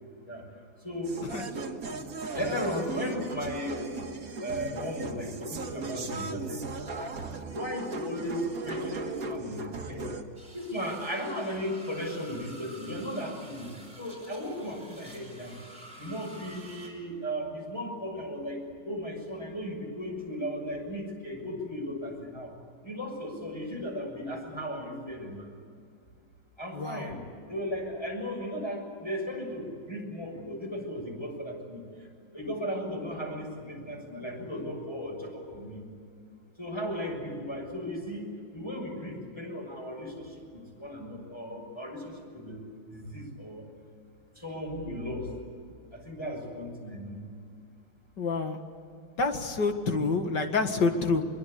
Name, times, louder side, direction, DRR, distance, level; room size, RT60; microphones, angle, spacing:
voice 1, 0.8-1.2 2.3-7.1 7.5-10.1 10.5-13.7 14.0-15.6 16.0-22.5 22.8-25.5 26.6-35.8 36.6-38.3 38.5-42.6 42.9-43.7 44.3-45.3 45.9-47.2, equal, 15° left, 1 dB, 6.7 m, -36 dB
sound 1, 1.0-10.2, right 3 dB, 50° right, 2.0 m, -37 dB
sound 2, 10.3-16.9, right 1 dB, 20° right, 6.6 m, -50 dB
voice 2, 26.7-27.1 48.2-48.6 49.2-51.2, left 4 dB, 65° left, 5 dB, 2.6 m, -27 dB
24.5 x 23.0 x 8.4 m, 2.4 s
omnidirectional pair, 2.1 m